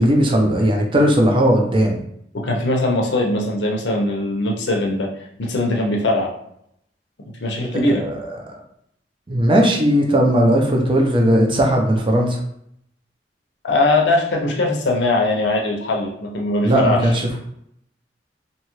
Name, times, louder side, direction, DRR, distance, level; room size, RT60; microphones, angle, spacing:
voice 1, 0.0-2.0 8.0-8.3 9.3-12.4 16.6-17.1, equal, 30° right, 1 dB, 0.5 m, -17 dB
voice 2, 2.4-5.1 5.4-6.3 7.4-8.0 13.6-17.1, left 2 dB, 85° left, 0 dB, 0.7 m, -20 dB
2.8 x 2.3 x 3.0 m, 0.72 s
head